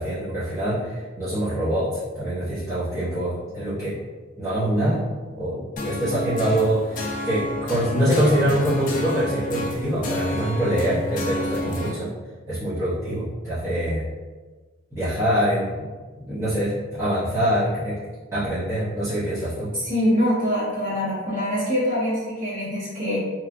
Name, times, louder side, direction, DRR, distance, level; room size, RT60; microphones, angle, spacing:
voice 1, 0.0-4.0 4.4-12.1 12.5-14.1 14.9-15.9 16.2-18.0 18.3-19.7, equal, 15° right, -15 dB, 0.8 m, -24 dB
sound 1, 5.8-11.9, left 1 dB, 40° left, 0.4 m, -30 dB
voice 2, 19.7-23.2, equal, 40° right, -10 dB, 1.2 m, -24 dB
3.0 x 2.4 x 2.5 m, 1.3 s
head